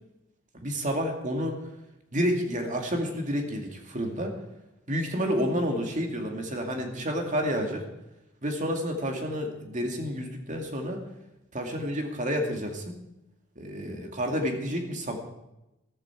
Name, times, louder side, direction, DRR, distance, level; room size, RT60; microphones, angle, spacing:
voice 1, 0.5-1.5 2.1-4.3 4.9-7.8 8.4-11.0 11.5-12.9 13.6-15.2, equal, 40° right, 3 dB, 2.2 m, -29 dB
14.5 x 13.5 x 4.7 m, 0.93 s
head